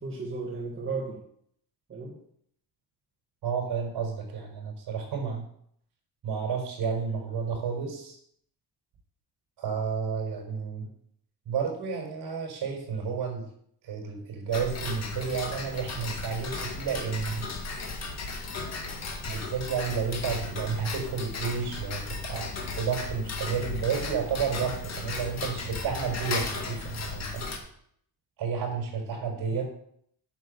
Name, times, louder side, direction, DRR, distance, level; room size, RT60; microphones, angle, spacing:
voice 1, 0.0-1.2 1.9-2.2 29.5-29.6, right 4 dB, 30° right, -1 dB, 1.6 m, -34 dB
voice 2, 3.4-5.4 6.2-8.2 9.6-10.9 11.5-13.5 13.8-17.5 19.2-22.5 22.8-27.4 28.4-29.6, right 6 dB, 65° right, 1 dB, 4.8 m, -31 dB
Tick-tock, 14.5-27.6, left 3 dB, 35° left, 1.8 m, -35 dB
9.0 x 6.7 x 6.8 m, 0.66 s
cardioid pair, 150°, 43 cm